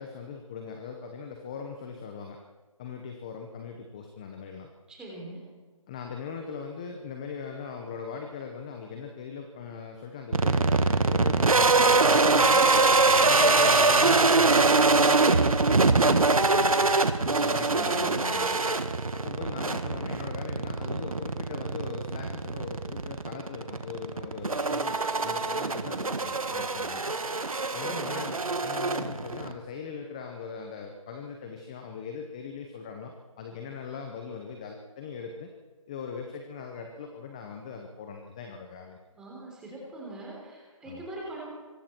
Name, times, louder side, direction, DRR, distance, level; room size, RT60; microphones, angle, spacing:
voice 1, 0.0-2.4 2.8-4.7 5.9-12.7 13.2-16.0 17.2-18.6 19.1-27.0 27.7-35.5 35.9-39.0 40.8-41.0, left 6 dB, 10° left, 4 dB, 0.8 m, -40 dB
voice 2, 4.9-5.4 17.3-18.3 27.8-28.3 39.2-41.5, right 1 dB, 5° right, -3 dB, 3.6 m, -41 dB
sound 1, 10.3-29.5, right 3 dB, 90° right, 1.9 m, -24 dB
25.5 x 23.0 x 4.5 m, 1.4 s
figure-of-eight pair, 170°, 17 cm